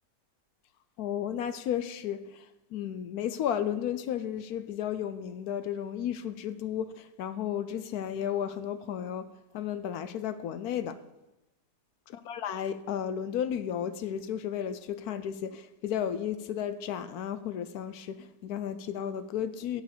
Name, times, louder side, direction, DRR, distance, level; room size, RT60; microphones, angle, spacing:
voice 1, 1.0-2.5 2.7-11.0 12.3-19.8, left 9 dB, 70° left, 1.0 m, -33 dB
8.0 x 7.8 x 6.6 m
omnidirectional pair, 1.8 m